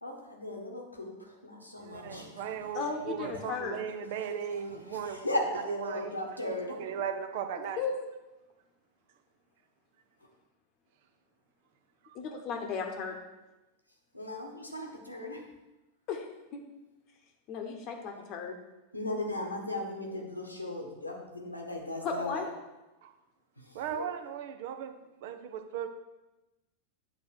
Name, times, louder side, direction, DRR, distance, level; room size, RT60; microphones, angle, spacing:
voice 1, 0.0-2.7 3.2-3.4 4.1-6.8 14.1-15.5 18.9-22.4 23.9-24.1, left 1 dB, 85° left, 1 dB, 1.3 m, -37 dB
voice 2, 1.8-5.3 5.7-6.2 6.8-7.8 12.0-12.2 23.0-23.1 23.7-25.9, right 8 dB, 50° right, 8 dB, 0.7 m, -37 dB
voice 3, 2.7-3.8 7.8-8.1 12.1-13.2 16.1-16.2 16.5-16.6 17.5-18.6 22.0-22.5, left 5 dB, 40° left, 3 dB, 1.0 m, -35 dB
8.3 x 3.9 x 6.3 m, 1.0 s
figure-of-eight pair, 90°, 0 cm